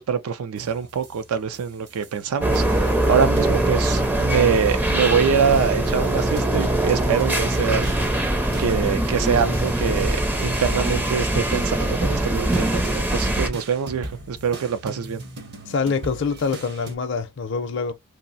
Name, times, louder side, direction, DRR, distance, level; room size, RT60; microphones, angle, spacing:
voice 1, 0.0-8.1 8.6-15.2, right 6 dB, 85° right, 0.4 m, -24 dB
sound 1, 0.6-2.3 2.5-5.2 5.5-17.0, right 1 dB, 50° right, 0.7 m, -38 dB
sound 2, 2.4-13.5, right 1 dB, 10° right, 0.4 m, -22 dB
voice 2, 15.7-17.9, left 5 dB, 55° left, 0.5 m, -25 dB
2.6 x 2.0 x 3.9 m
head